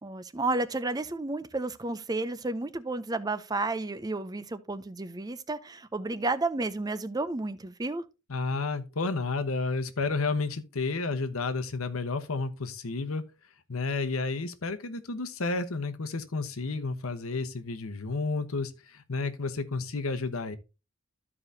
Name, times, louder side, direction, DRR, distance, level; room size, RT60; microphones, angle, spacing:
voice 1, 0.0-8.0, right 2 dB, 20° right, 0.5 m, -32 dB
voice 2, 8.3-13.2 13.7-20.6, left 3 dB, 85° left, 1.0 m, -31 dB
13.5 x 4.9 x 2.6 m
head